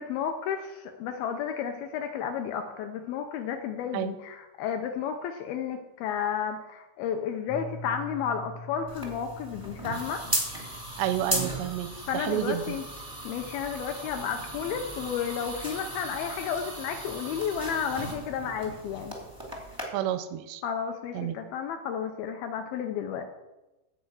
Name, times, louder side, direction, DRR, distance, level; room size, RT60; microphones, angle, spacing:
voice 1, 0.0-10.3 12.1-12.9 13.2-19.1 20.6-23.3, left 7 dB, 90° left, 6 dB, 2.2 m, -32 dB
Piano, 7.5-13.1, left 1 dB, 70° left, 1.8 m, -45 dB
sound 1, 8.9-19.8, right 1 dB, 30° right, 0.4 m, -36 dB
voice 2, 11.0-12.8 19.9-20.6 21.1-21.4, right 11 dB, 85° right, 11 dB, 2.8 m, -30 dB
13.5 x 4.6 x 7.8 m, 1.0 s
omnidirectional pair, 4.9 m